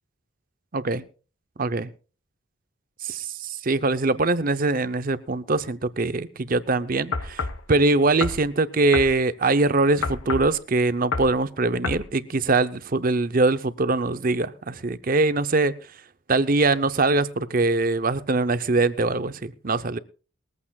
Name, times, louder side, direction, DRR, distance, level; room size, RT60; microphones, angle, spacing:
voice 1, 0.7-1.0 1.6-1.9 3.0-15.7 16.3-20.0, right 3 dB, 45° right, 0.7 m, -23 dB
sound 1, 7.1-7.6 8.2-8.4 8.9-9.1 10.0-10.5 11.1-11.4 11.8-12.1, left 4 dB, 80° left, 1.0 m, -28 dB
20.5 x 14.5 x 2.4 m
head